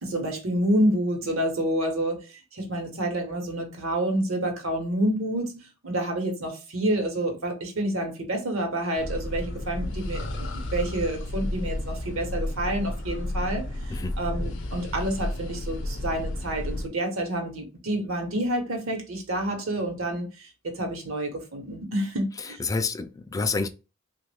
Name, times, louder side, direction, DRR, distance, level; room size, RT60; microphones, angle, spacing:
voice 1, 0.0-13.7 14.2-20.3 20.6-22.6, right 1 dB, 75° right, 1.0 m, -28 dB
sound 1, 9.0-16.9, left 1 dB, 60° left, 0.6 m, -32 dB
voice 2, 22.6-23.7, left 4 dB, 15° left, 0.3 m, -28 dB
3.0 x 2.3 x 3.4 m
head